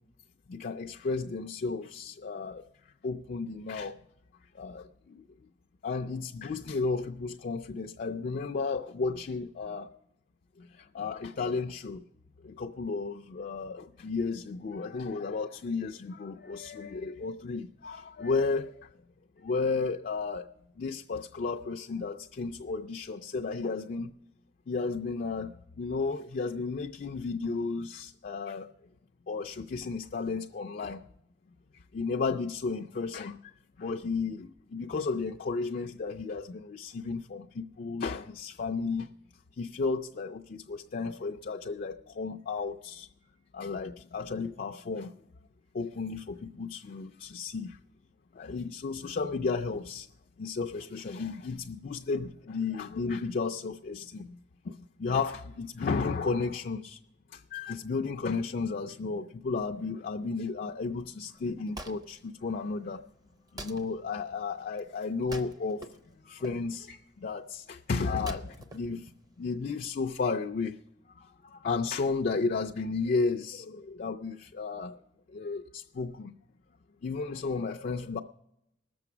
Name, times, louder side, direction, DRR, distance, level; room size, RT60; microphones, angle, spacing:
voice 1, 0.5-2.6 3.0-4.0 4.5-5.5 5.8-9.9 10.6-12.0 12.4-18.9 19.4-20.5 20.8-24.1 24.7-28.7 29.3-31.0 31.9-33.5 33.8-39.1 39.6-43.1 43.5-45.1 45.7-47.8 48.3-50.1 50.4-54.4 54.6-57.0 57.3-63.0 63.5-66.0 66.2-69.1 69.4-70.8 71.2-75.0 75.3-76.3 77.0-78.2, left 4 dB, 50° left, 0.4 m, -33 dB
Wood, 61.3-69.7, right 1 dB, 20° right, 0.7 m, -48 dB
18.5 x 6.9 x 5.9 m
head